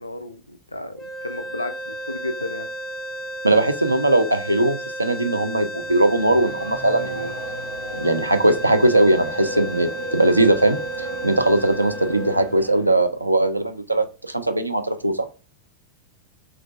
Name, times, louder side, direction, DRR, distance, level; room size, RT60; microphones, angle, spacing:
voice 1, 0.0-2.7, left 2 dB, 85° left, 9 dB, 0.3 m, -33 dB
sound 1, 1.0-13.2, right 1 dB, 10° left, 0.5 m, -33 dB
voice 2, 3.4-7.3 8.0-15.3, right 1 dB, 85° right, 7 dB, 0.4 m, -20 dB
Race car auto racing / Accelerating revving vroom, 5.8-13.1, equal, 65° right, 1.1 m, -34 dB
3.1 x 2.5 x 3.2 m, 0.33 s
figure-of-eight pair, 90°, 0 cm